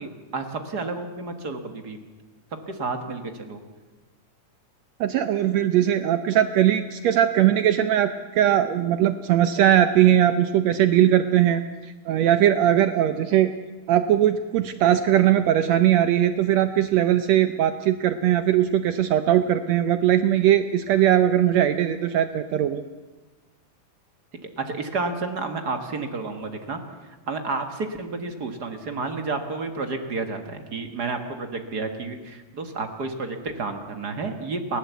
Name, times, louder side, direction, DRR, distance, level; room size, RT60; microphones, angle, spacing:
voice 1, 0.0-2.0 2.7-3.6 24.6-26.8 27.3-34.8, right 3 dB, 40° right, 6 dB, 1.6 m, -31 dB
voice 2, 5.0-13.5 13.9-22.8, right 11 dB, 75° right, 10 dB, 1.7 m, -20 dB
29.5 x 11.5 x 8.2 m, 1.3 s
omnidirectional pair, 3.5 m